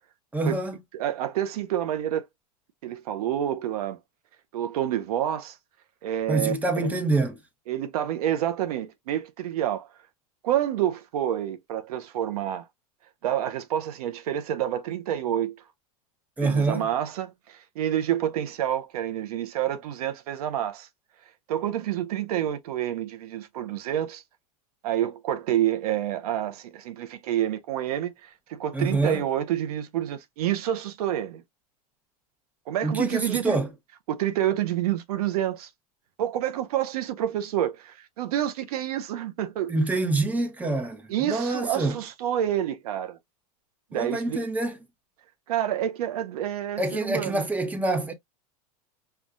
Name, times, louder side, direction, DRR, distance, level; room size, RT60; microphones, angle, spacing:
voice 1, 0.3-0.7 6.3-7.4 16.4-16.9 28.7-29.2 32.8-33.7 39.7-42.0 43.9-44.8 46.8-48.1, right 2 dB, 10° right, 0.9 m, -26 dB
voice 2, 0.9-2.2 2.8-4.0 4.5-5.6 6.0-6.5 7.7-9.9 10.4-12.6 13.2-15.6 16.4-20.9 21.5-24.2 24.8-31.4 32.7-33.6 34.1-35.7 36.2-39.7 41.1-43.2 43.9-44.4 45.5-47.4, right 11 dB, 70° right, 0.6 m, -28 dB
5.5 x 2.3 x 2.4 m
hypercardioid pair, 110°, 20 cm